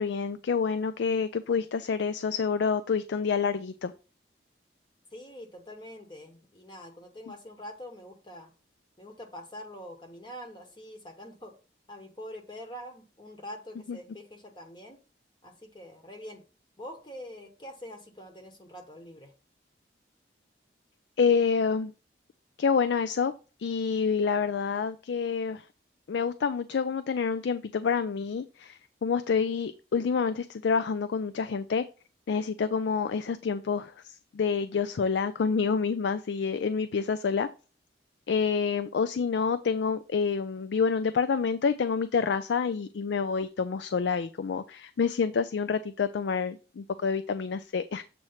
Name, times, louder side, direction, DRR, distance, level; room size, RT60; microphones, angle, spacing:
voice 1, 0.0-3.9 13.9-14.0 21.2-21.9 22.6-23.3 23.6-25.6 26.1-28.7 29.0-31.8 32.3-37.5 38.3-48.0, left 5 dB, 80° left, 11 dB, 0.4 m, -28 dB
voice 2, 5.1-8.5 9.0-11.5 11.9-15.0 15.4-16.4 16.8-19.3, equal, 25° left, 4 dB, 1.0 m, -45 dB
7.6 x 3.1 x 5.6 m, 0.34 s
head